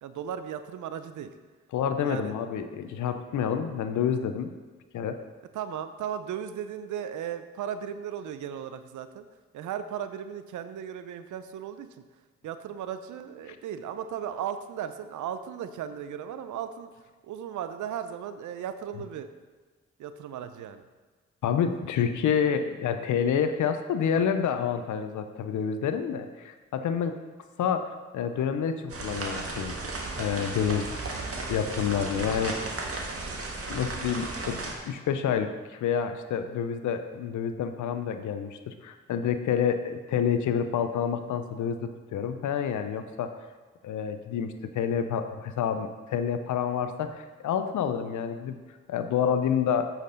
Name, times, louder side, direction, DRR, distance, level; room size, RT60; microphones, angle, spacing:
voice 1, 0.0-1.3 2.0-2.3 5.5-9.3 9.5-11.9 12.4-16.9 17.2-19.3 20.0-20.8, right 9 dB, 75° right, 11 dB, 0.6 m, -36 dB
voice 2, 1.7-4.5 4.9-5.2 21.4-27.2 27.6-29.8 30.2-30.9 31.5-32.7 33.7-43.3 43.8-48.6 48.9-49.9, left 7 dB, 75° left, 9 dB, 0.7 m, -28 dB
sound 1, 28.9-34.7, right 2 dB, 50° right, 1.5 m, -35 dB
8.2 x 5.9 x 3.9 m, 1.4 s
supercardioid pair, 45°, 30 cm